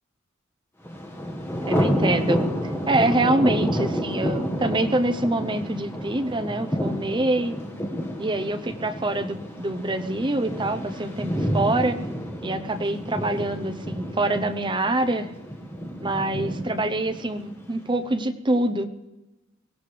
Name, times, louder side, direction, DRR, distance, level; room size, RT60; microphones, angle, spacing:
Thunder, 0.8-17.8, equal, 10° left, 1.6 m, -29 dB
voice 1, 1.7-2.4 2.9-7.6 8.2-12.0 12.4-15.3 16.0-18.9, right 2 dB, 25° right, 7 dB, 0.8 m, -25 dB
23.5 x 16.5 x 3.4 m, 1.0 s
head